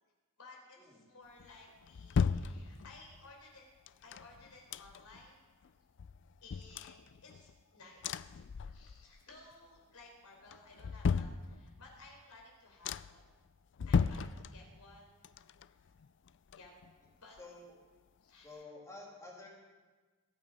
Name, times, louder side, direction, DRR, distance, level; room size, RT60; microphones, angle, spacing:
voice 1, 0.4-3.6 4.0-5.4 6.4-13.2 13.8-15.1 15.7-15.9 16.5-16.7 17.2-17.4 18.2-18.7, left 3 dB, 80° left, 0 dB, 4.1 m, -57 dB
sound 1, 1.4-3.1 3.9-5.3 5.6-5.7 6.0-7.6 8.0-9.2 9.5-10.0 10.5-11.9 12.4-12.5 12.8-13.3 13.7-14.9 15.2-17.1 17.4-17.5, left 5 dB, 55° left, 0.4 m, -36 dB
voice 2, 17.4-17.7 18.4-19.5, left 2 dB, 15° left, -2 dB, 2.9 m, -50 dB
21.0 x 8.7 x 5.3 m, 1.3 s
head